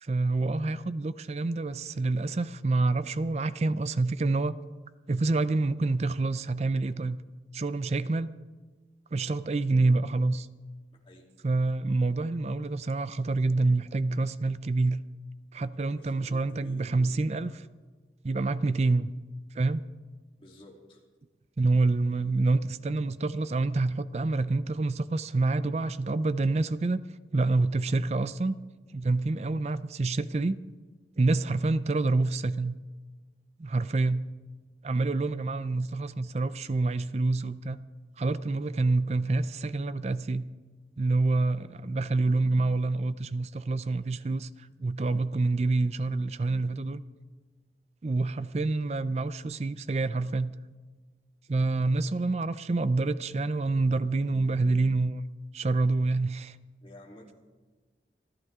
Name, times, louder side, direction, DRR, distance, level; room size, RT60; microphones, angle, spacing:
voice 1, 0.0-4.6 5.1-7.2 7.5-8.3 9.1-10.5 11.4-15.0 15.5-17.5 18.2-19.1 19.5-19.8 21.6-27.0 27.3-28.5 28.9-30.6 31.2-32.7 33.6-34.3 34.8-37.8 38.2-40.4 41.0-47.0 48.0-50.5 51.5-55.2 55.5-56.6, right 3 dB, 35° right, 0.4 m, -27 dB
voice 2, 15.9-17.7 20.4-21.0 56.8-57.3, left 1 dB, 30° left, 3.0 m, -51 dB
28.5 x 11.5 x 3.6 m
head